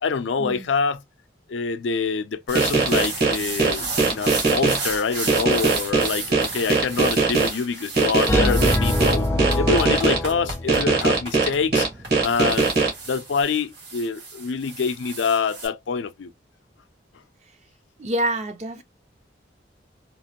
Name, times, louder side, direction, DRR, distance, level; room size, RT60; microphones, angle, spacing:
voice 1, 0.0-1.0 1.5-9.3 9.6-11.9 12.2-12.8 13.1-16.3, left 5 dB, 80° left, 0.4 m, -26 dB
sound 1, 2.5-4.8 5.3-7.5 8.0-10.2 10.7-12.9, right 4 dB, 55° right, 1.2 m, -20 dB
sound 2, 2.5-15.7, right 3 dB, 75° right, 1.7 m, -34 dB
sound 3, 8.3-11.2, left 1 dB, 15° left, 0.4 m, -24 dB
voice 2, 18.0-18.8, right 1 dB, 40° right, 0.5 m, -26 dB
2.9 x 2.5 x 2.8 m
head